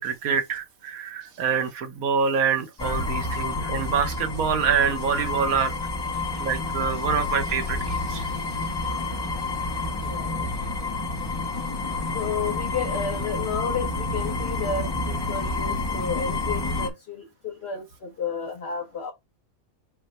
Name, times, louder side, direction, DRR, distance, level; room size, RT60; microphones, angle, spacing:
voice 1, 0.0-5.8 6.4-8.3, right 6 dB, 85° right, 1.4 m, -26 dB
sound 1, 2.8-16.9, left 3 dB, 25° left, 0.6 m, -29 dB
voice 2, 10.0-10.5 10.8-10.9 12.1-19.1, left 5 dB, 50° left, 1.1 m, -32 dB
5.7 x 2.1 x 4.4 m
omnidirectional pair, 1.5 m